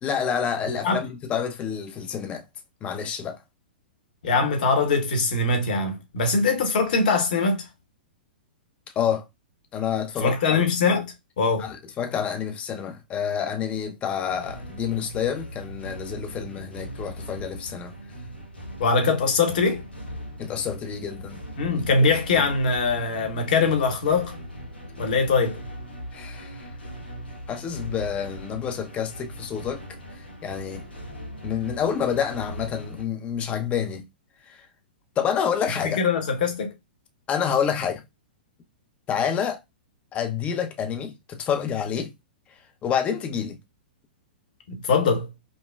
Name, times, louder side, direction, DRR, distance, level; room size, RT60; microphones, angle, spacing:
voice 1, 0.0-2.5 2.8-3.4 9.0-9.2 9.7-10.6 11.6-18.0 20.4-21.4 22.1-22.2 26.1-26.7 27.5-29.8 30.1-30.9 31.4-34.1 34.5-34.6 35.2-36.0 37.3-38.0 39.1-39.6 40.1-42.1 42.8-43.6, left 8 dB, 25° left, 0.6 m, -28 dB
voice 2, 4.2-7.7 10.2-11.7 18.8-19.8 21.6-24.3 25.0-25.6 35.8-36.7 44.7-45.3, left 4 dB, 60° left, 1.0 m, -22 dB
sound 1, 14.3-33.0, equal, 85° left, 1.0 m, -39 dB
5.2 x 2.2 x 2.2 m
figure-of-eight pair, 110°, 5 cm